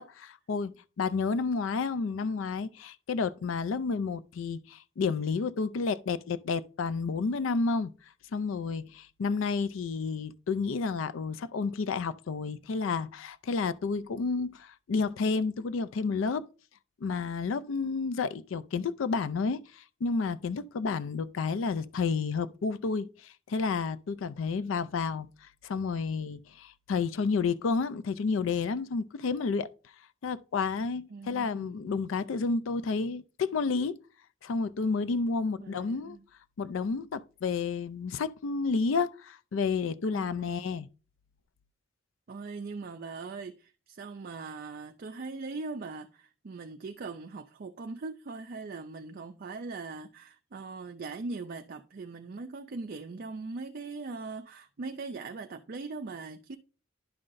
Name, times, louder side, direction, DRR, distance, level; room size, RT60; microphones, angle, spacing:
voice 1, 0.0-7.9 8.3-16.5 17.0-29.7 30.2-34.0 34.4-36.2 36.6-40.9, left 4 dB, 75° left, 0.4 m, -31 dB
voice 2, 31.1-32.0 35.6-36.2 40.1-40.8 42.3-56.6, right 3 dB, 50° right, 0.4 m, -40 dB
11.0 x 5.6 x 2.6 m
head